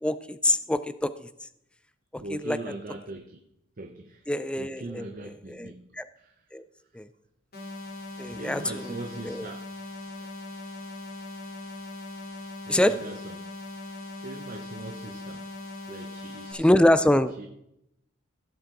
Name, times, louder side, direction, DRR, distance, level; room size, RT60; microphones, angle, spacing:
voice 1, 0.0-1.3 2.1-2.6 4.3-5.1 5.5-6.1 6.5-6.6 6.9-7.1 8.2-9.0 9.2-9.5 12.7-12.9 16.5-17.3, left 1 dB, 5° left, 12 dB, 0.3 m, -25 dB
voice 2, 2.2-3.4 3.8-4.3 4.6-5.8 6.1-6.3 8.4-9.6 10.1-10.3 12.6-13.7 14.2-15.5 15.9-16.7 17.4-17.5, right 2 dB, 45° right, 5 dB, 0.8 m, -40 dB
sound 1, 7.5-16.5, left 2 dB, 50° left, 2.7 m, -40 dB
16.0 x 7.4 x 3.8 m, 0.80 s
head